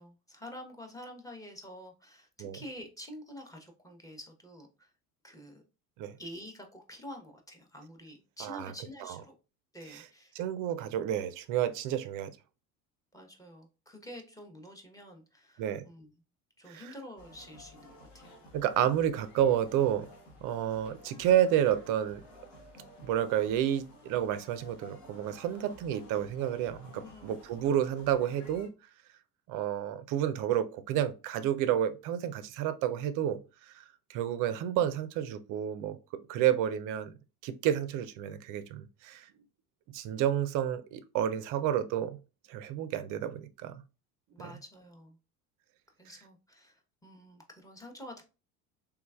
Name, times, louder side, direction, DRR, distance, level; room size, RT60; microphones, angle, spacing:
voice 1, 0.0-4.9 5.2-5.6 6.2-9.3 9.7-10.4 13.1-16.1 16.6-18.4 26.9-27.4 44.3-45.2 46.0-48.2, equal, 10° left, 0.8 m, -48 dB
voice 2, 10.4-12.3 15.6-15.9 16.7-16.9 18.5-20.1 20.4-22.2 23.0-28.7 29.5-33.4 33.7-33.8 34.1-36.0 36.3-37.1 37.4-39.3 39.9-42.2 42.5-43.7, right 10 dB, 45° right, 0.5 m, -30 dB
sound 1, 17.2-28.7, left 1 dB, 55° left, 1.4 m, -54 dB
3.4 x 3.1 x 2.3 m
hypercardioid pair, 70°, 45 cm